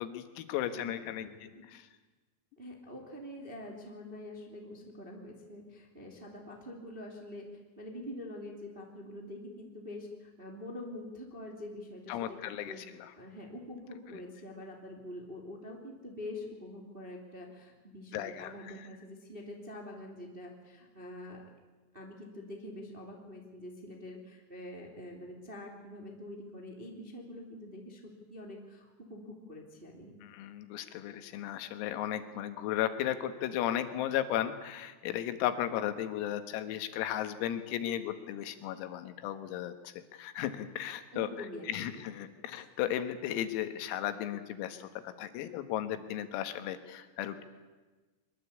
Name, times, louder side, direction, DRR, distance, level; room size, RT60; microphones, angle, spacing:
voice 1, 0.0-1.9 12.1-13.1 14.1-14.2 18.1-18.9 30.2-41.3 41.7-47.4, left 11 dB, 85° left, 9 dB, 4.2 m, -35 dB
voice 2, 0.7-1.6 2.6-7.4 7.8-21.4 21.9-30.1 41.1-42.0, left 1 dB, 20° right, 1 dB, 1.7 m, -45 dB
23.0 x 22.0 x 8.5 m, 1.2 s
omnidirectional pair, 5.9 m